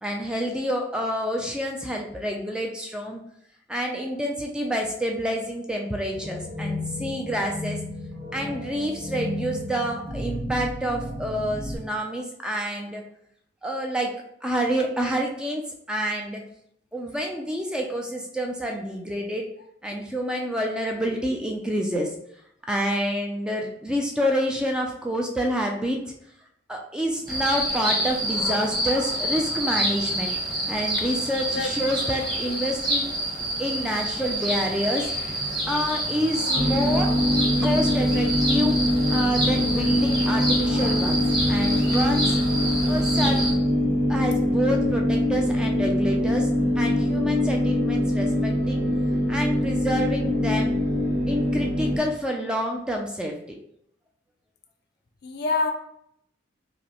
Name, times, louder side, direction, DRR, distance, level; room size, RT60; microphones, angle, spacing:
voice 1, 0.0-3.2 3.7-7.8 8.3-13.0 13.6-14.2 14.4-16.4 16.9-19.5 19.8-22.1 22.7-26.0 26.7-30.3 30.7-33.1 33.6-35.1 35.7-37.1 37.6-38.8 39.1-41.2 41.5-42.4 42.8-43.6 44.1-46.5 46.8-48.9 49.3-50.7 51.3-53.6, equal, 5° right, 0 dB, 0.3 m, -28 dB
sound 1, 6.1-11.8, left 1 dB, 50° right, 1.0 m, -33 dB
sound 2, 27.3-43.5, right 1 dB, 20° right, 1.2 m, -28 dB
sound 3, 36.5-52.0, left 1 dB, 85° right, 0.8 m, -23 dB
voice 2, 55.2-55.7, left 3 dB, 55° left, 5 dB, 0.5 m, -26 dB
5.1 x 2.0 x 2.9 m, 0.72 s
head